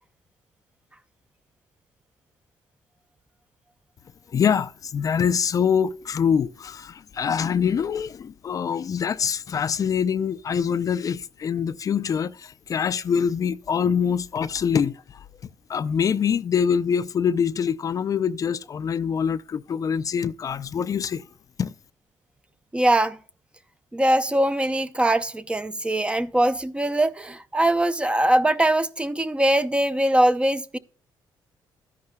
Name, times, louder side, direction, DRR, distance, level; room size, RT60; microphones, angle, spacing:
voice 1, 4.3-21.3 21.6-21.7, left 7 dB, 45° left, 0.4 m, -24 dB
voice 2, 22.7-23.2 23.9-30.8, right 1 dB, 15° right, 0.6 m, -22 dB
13.5 x 10.5 x 2.2 m
cardioid pair, 95°, 8 cm